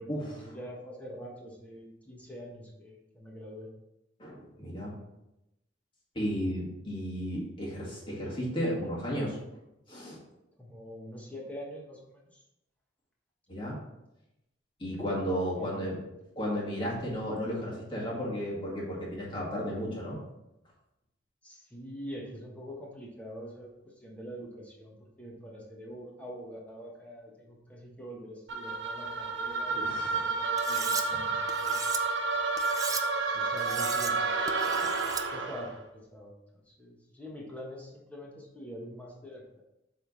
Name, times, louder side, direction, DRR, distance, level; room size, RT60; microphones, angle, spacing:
voice 1, 0.0-3.7 10.6-12.4 15.5-16.0 21.4-31.8 33.3-34.6 35.0-39.6, equal, 10° left, -3 dB, 1.3 m, -45 dB
voice 2, 4.2-4.9 6.1-9.4 9.9-10.2 13.5-13.8 14.8-16.0 16.4-20.2 29.7-30.3 31.1-31.2, equal, 30° left, -5 dB, 2.0 m, -33 dB
sound 1, 28.5-35.7, right 3 dB, 80° right, 0.8 m, -30 dB
Cutlery silverware, 30.6-31.0 31.5-32.0 32.6-33.0 33.6-34.1 34.5-35.2, right 6 dB, 20° right, 0.4 m, -36 dB
7.7 x 3.7 x 4.0 m, 0.91 s
head